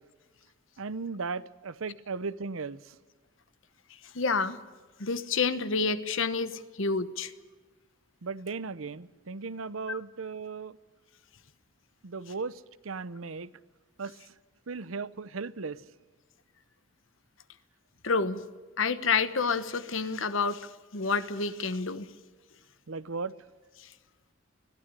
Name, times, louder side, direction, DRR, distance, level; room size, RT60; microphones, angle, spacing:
voice 1, 0.8-2.8 8.2-10.7 12.0-12.6 12.8-13.5 14.0-14.1 14.7-15.8 22.9-23.3, right 4 dB, 80° right, 0.8 m, -36 dB
voice 2, 4.1-4.6 5.0-7.3 9.9-10.0 18.0-18.4 18.8-22.1, left 4 dB, 70° left, 1.1 m, -29 dB
21.5 x 14.5 x 9.8 m
head